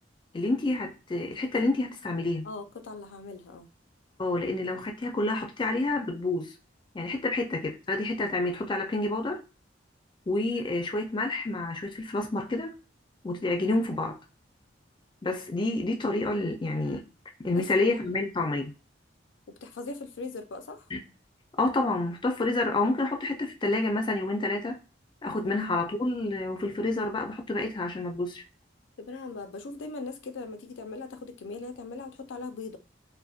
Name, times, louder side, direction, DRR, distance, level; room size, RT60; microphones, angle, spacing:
voice 1, 0.3-2.5 4.2-6.5 6.9-9.4 10.3-12.7 13.2-14.2 15.2-17.0 17.4-18.7 20.9-21.0 21.6-24.8 25.2-28.4, left 2 dB, 25° left, 0.4 m, -28 dB
voice 2, 2.4-3.7 17.5-17.6 17.9-18.0 19.6-20.9 29.0-32.8, left 3 dB, 85° left, 0.5 m, -39 dB
2.5 x 2.1 x 2.4 m
head